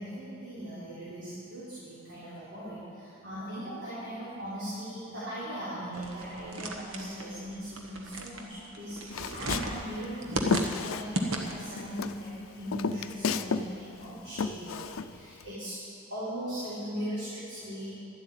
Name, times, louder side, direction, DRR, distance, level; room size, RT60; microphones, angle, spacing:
voice 1, 0.0-15.8 16.1-17.9, equal, 60° right, -11 dB, 3.8 m, -39 dB
sound 1, 5.9-11.8, right 1 dB, 80° right, 1.3 m, -35 dB
Walk footsteps, 9.1-11.5 11.8-13.7 13.9-15.5, left 5 dB, 90° left, 0.5 m, -32 dB
11.5 x 8.0 x 9.1 m, 2.7 s
head